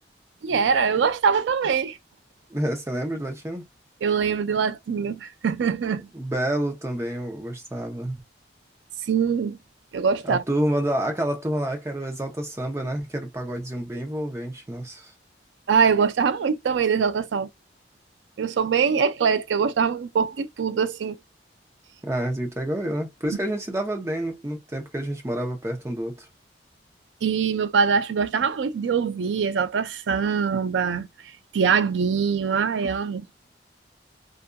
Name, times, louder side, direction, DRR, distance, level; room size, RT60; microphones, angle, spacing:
voice 1, 0.4-2.0 4.0-6.1 9.0-9.6 9.9-10.4 15.7-17.5 18.4-21.2 27.2-33.3, right 6 dB, 90° right, 0.4 m, -23 dB
voice 2, 2.5-3.7 6.1-8.2 10.2-15.1 22.0-26.3, right 1 dB, 15° right, 0.6 m, -28 dB
2.6 x 2.4 x 2.2 m
head